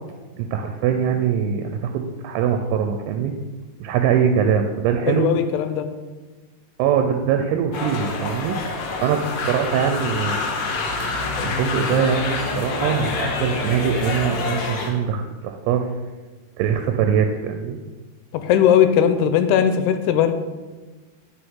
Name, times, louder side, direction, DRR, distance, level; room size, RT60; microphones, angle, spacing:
voice 1, 0.4-3.3 3.8-5.3 6.8-8.6 9.0-10.4 11.4-15.9 16.6-17.8, right 7 dB, 90° right, 5 dB, 2.6 m, -22 dB
voice 2, 5.1-5.9 18.3-20.3, left 9 dB, 85° left, 9 dB, 2.6 m, -18 dB
sound 1, 7.7-14.9, left 3 dB, 65° left, 2.4 m, -26 dB
9.8 x 5.8 x 3.7 m, 1.3 s
omnidirectional pair, 4.6 m